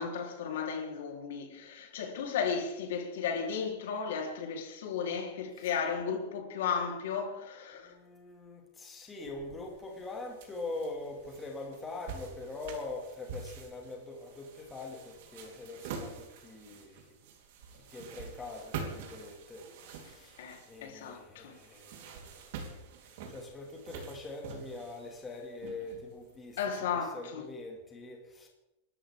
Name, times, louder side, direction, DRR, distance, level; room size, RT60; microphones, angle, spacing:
voice 1, 0.0-7.9 20.4-21.6 26.6-27.4, left 6 dB, 75° left, 3.6 m, -34 dB
voice 2, 7.7-17.0 17.9-20.4 20.7-22.5 23.0-28.5, left 2 dB, 10° left, 2.3 m, -43 dB
sound 1, 9.3-26.7, right 5 dB, 60° right, 3.6 m, -47 dB
28.5 x 13.0 x 3.7 m
supercardioid pair, 170°, 0 cm